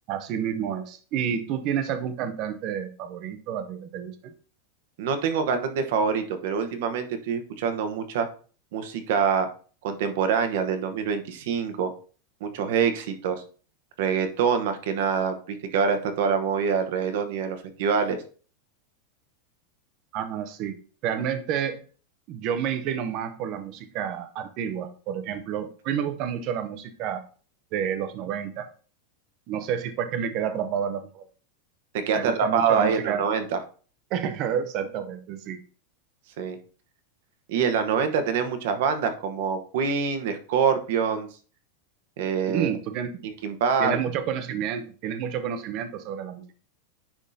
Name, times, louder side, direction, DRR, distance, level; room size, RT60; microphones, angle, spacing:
voice 1, 0.1-4.3 20.1-20.8 21.0-21.8 22.3-27.2 27.7-28.7 29.5-31.2 32.1-33.2 34.1-35.6 42.5-43.2 43.8-46.4, right 8 dB, 30° right, 10 dB, 0.6 m, -30 dB
voice 2, 5.0-8.3 8.7-9.5 9.8-11.9 12.4-13.4 14.0-18.2 31.9-33.6 36.4-36.6 37.5-41.3 42.2-42.7 43.2-43.9, right 6 dB, 55° right, 8 dB, 0.9 m, -25 dB
10.0 x 3.6 x 2.7 m, 0.40 s
supercardioid pair, 175°, 0 cm